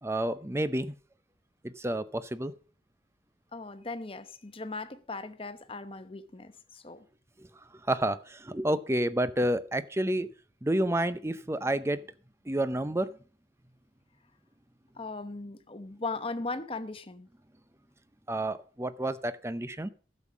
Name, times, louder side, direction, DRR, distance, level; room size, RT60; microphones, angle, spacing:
voice 1, 0.0-0.9 1.6-2.5 7.4-7.5 7.9-10.3 10.6-12.0 12.5-13.1 18.3-19.9, right 1 dB, 15° right, 0.6 m, -29 dB
voice 2, 3.5-7.1 15.0-17.3, left 3 dB, 30° left, 0.9 m, -38 dB
12.0 x 7.3 x 6.1 m
head